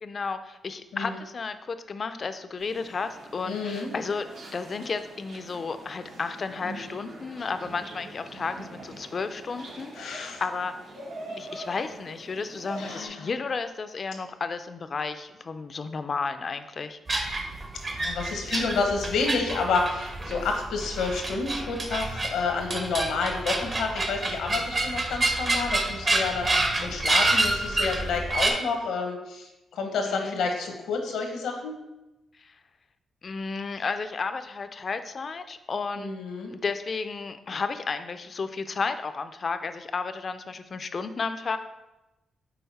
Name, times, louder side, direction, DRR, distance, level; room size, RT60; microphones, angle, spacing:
voice 1, 0.0-4.3 4.5-10.7 11.4-17.0 30.1-30.4 32.4-32.6 33.2-36.1 36.5-41.6, left 4 dB, 45° left, 9 dB, 0.4 m, -33 dB
sound 1, 2.6-13.1, right 1 dB, 70° right, 1.4 m, -43 dB
voice 2, 3.4-3.9 9.9-10.4 12.7-13.3 17.9-31.7 36.0-36.5, left 4 dB, 90° left, 3 dB, 1.0 m, -29 dB
sound 2, 17.1-28.5, right 2 dB, 35° right, 0.9 m, -28 dB
5.7 x 4.1 x 4.1 m, 0.98 s
cardioid pair, 85°, 0 cm